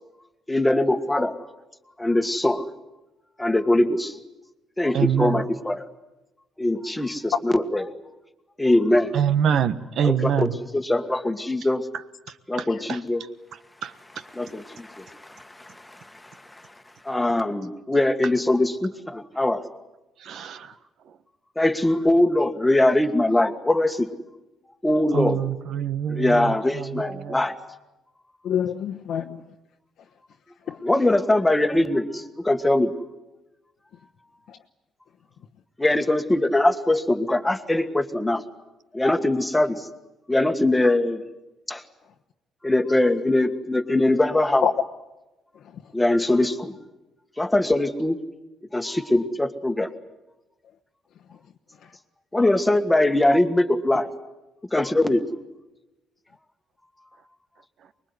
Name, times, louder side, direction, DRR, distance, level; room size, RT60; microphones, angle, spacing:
voice 1, 0.5-1.4 2.0-2.7 3.4-4.2 4.8-5.9 6.6-7.8 8.6-9.1 10.0-11.9 12.5-13.2 14.3-16.7 17.0-19.6 21.6-24.1 24.8-25.4 26.1-27.6 30.8-32.9 35.8-38.4 38.9-39.9 40.3-41.2 41.7-41.8 42.6-44.7 45.9-46.8 47.4-48.2 48.7-49.9 52.3-54.1 54.7-55.2, left 1 dB, 10° left, 7 dB, 1.7 m, -22 dB
voice 2, 4.9-5.5 9.1-10.6 12.3-13.0 13.8-13.9 20.2-20.7 25.1-27.4, right 8 dB, 65° right, 12 dB, 1.4 m, -25 dB
voice 3, 28.4-29.5 30.7-30.8 34.5-34.6 44.6-44.7 45.5-45.9 51.8-51.9, left 8 dB, 70° left, 1 dB, 1.1 m, -28 dB
24.5 x 22.0 x 9.7 m, 1.0 s
cardioid pair, 120°, 0 cm